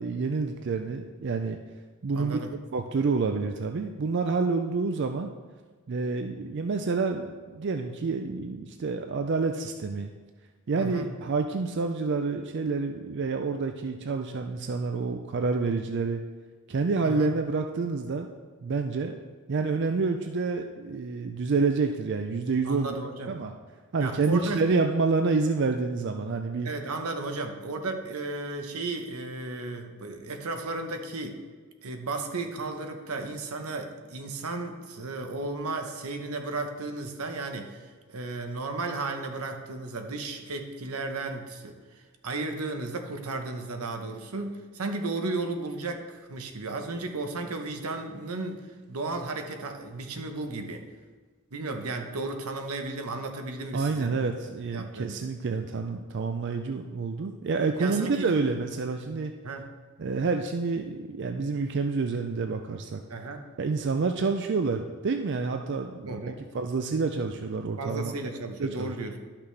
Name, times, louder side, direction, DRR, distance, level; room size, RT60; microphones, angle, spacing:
voice 1, 0.0-1.6 2.0-2.4 2.7-5.3 5.9-10.1 10.7-16.2 16.7-18.3 18.6-19.1 19.5-22.9 23.3-23.5 23.9-26.7 53.7-59.3 60.0-63.0 63.6-66.2 66.5-68.1 68.6-68.9, right 4 dB, 55° right, 5 dB, 0.4 m, -28 dB
voice 2, 2.1-2.5 10.7-11.1 17.0-17.3 22.6-23.4 24.0-24.6 26.6-31.4 31.8-41.7 42.2-50.8 51.5-54.2 54.7-55.2 57.8-58.3 59.4-59.7 63.1-63.4 66.1-66.4 67.8-69.2, right 3 dB, 85° right, 5 dB, 1.0 m, -34 dB
12.0 x 5.8 x 3.3 m, 1.4 s
head